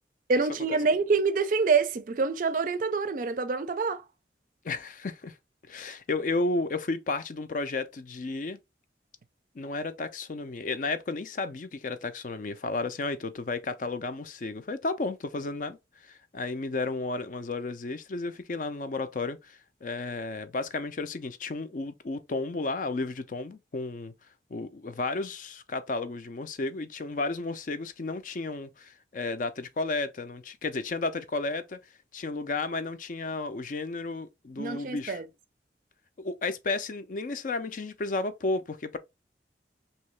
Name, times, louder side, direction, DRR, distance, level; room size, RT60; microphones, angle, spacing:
voice 1, 0.3-4.0 34.6-35.3, right 4 dB, 50° right, 0.4 m, -26 dB
voice 2, 4.6-5.3 5.7-8.6 9.6-24.1 24.5-31.8 32.1-35.2 36.2-39.0, left 3 dB, 50° left, 0.4 m, -33 dB
3.1 x 2.8 x 3.1 m
head